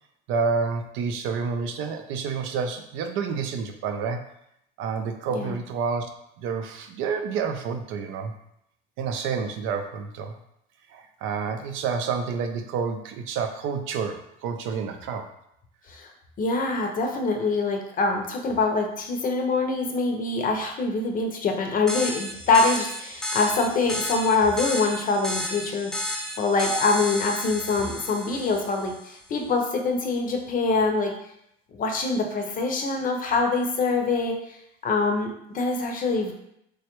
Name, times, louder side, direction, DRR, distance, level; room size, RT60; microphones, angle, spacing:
voice 1, 0.3-4.2 4.8-6.1 6.4-8.3 9.0-10.4 10.9-15.3, right 5 dB, 70° right, 6 dB, 0.5 m, -29 dB
voice 2, 16.4-31.1 31.7-34.6 34.8-36.3, left 3 dB, 40° left, 3 dB, 0.6 m, -24 dB
sound 1, 21.9-29.0, left 1 dB, 5° left, 0.3 m, -32 dB
3.2 x 2.3 x 3.0 m, 0.78 s
supercardioid pair, 95°, 21 cm